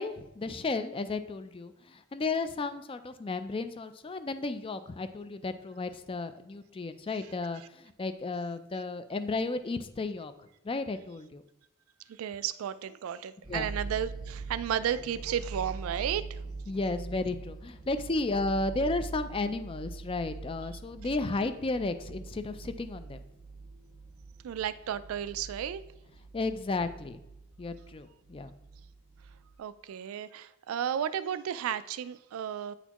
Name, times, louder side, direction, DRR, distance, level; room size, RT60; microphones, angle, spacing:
voice 1, 0.0-10.3 10.6-11.4 13.5-13.7 16.7-23.2 26.3-27.2 27.6-28.5, left 3 dB, 25° left, 10 dB, 0.3 m, -33 dB
voice 2, 12.1-16.4 24.4-25.8 29.6-32.7, right 9 dB, 75° right, 15 dB, 0.3 m, -33 dB
sound 1, 13.4-29.6, right 4 dB, 20° right, 0.6 m, -43 dB
9.0 x 4.2 x 2.9 m, 0.84 s
head